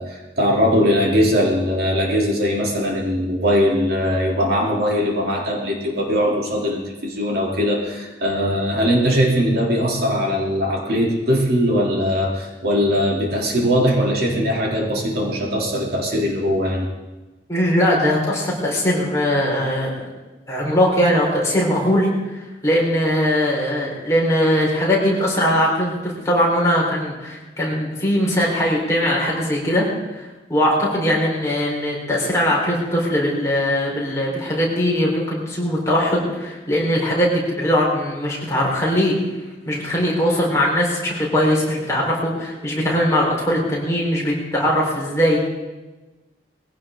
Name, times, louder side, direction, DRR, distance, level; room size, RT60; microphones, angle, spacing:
voice 1, 0.0-16.9, equal, 55° right, -2 dB, 3.4 m, -20 dB
voice 2, 17.5-19.9 20.5-29.9 30.1-39.1 39.6-45.4, equal, 15° left, -4 dB, 4.6 m, -20 dB
21.5 x 16.5 x 3.9 m, 1.1 s
head